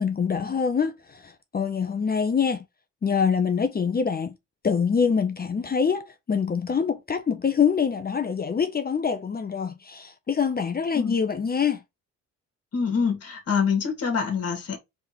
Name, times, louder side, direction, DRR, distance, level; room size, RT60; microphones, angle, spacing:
voice 1, 0.0-2.6 3.0-4.3 4.6-11.8, left 6 dB, 30° left, 0.8 m, -25 dB
voice 2, 12.7-14.8, left 6 dB, 50° left, 2.1 m, -25 dB
4.3 x 3.6 x 3.1 m
cardioid pair, 90°, 30 cm